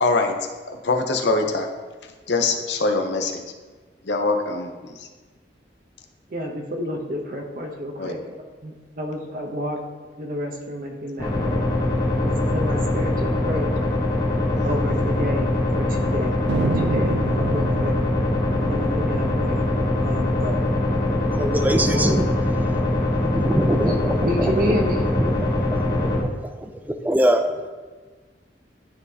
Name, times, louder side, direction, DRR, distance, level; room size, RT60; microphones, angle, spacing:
voice 1, 0.0-1.7 2.0-3.4 4.0-5.1 8.0-8.2 14.6-14.7 16.2-16.3, left 3 dB, 70° left, 3 dB, 0.8 m, -24 dB
voice 2, 6.3-8.3 8.6-9.8 10.2-11.7 12.2-13.7 14.6-17.9 18.6-19.7 20.0-20.6 21.6-22.2 23.8-25.1, equal, 50° right, 2 dB, 0.8 m, -30 dB
sound 1, 11.2-26.2, left 1 dB, 20° left, 1.0 m, -23 dB
Thunder, 16.5-21.3 21.6-21.7 21.9-22.4 22.9-24.1, right 4 dB, 70° right, 0.4 m, -30 dB
voice 3, 21.3-22.2 22.6-22.7 23.3-24.2 24.7-24.8 25.3-25.4 26.0-26.3 27.0-27.7, right 1 dB, 10° right, 7 dB, 0.4 m, -22 dB
11.5 x 4.1 x 2.8 m, 1.4 s
head